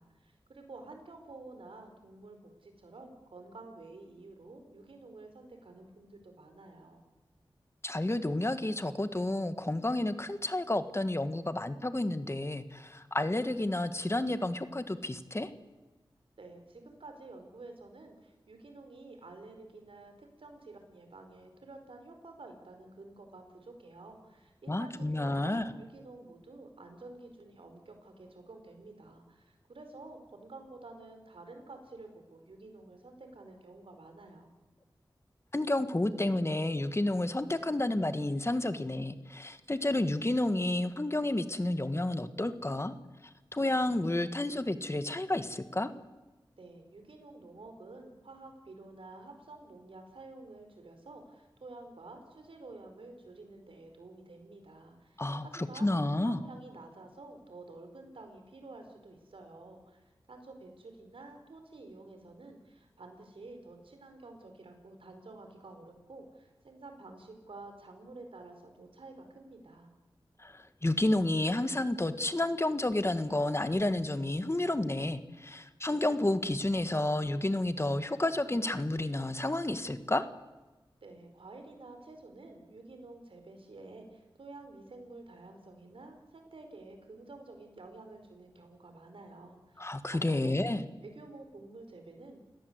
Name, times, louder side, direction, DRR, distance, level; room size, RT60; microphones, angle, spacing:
voice 1, 0.0-7.0 16.4-34.5 46.6-60.0 60.3-69.9 81.0-90.6 91.0-92.4, right 2 dB, 80° right, 5 dB, 4.8 m, -50 dB
voice 2, 7.8-15.5 24.7-25.6 35.5-42.9 43.5-45.9 55.2-56.4 70.4-80.3 89.8-90.8, left 1 dB, 30° left, 11 dB, 1.8 m, -30 dB
29.5 x 17.5 x 8.3 m, 1.1 s
cardioid pair, 45°, 9 cm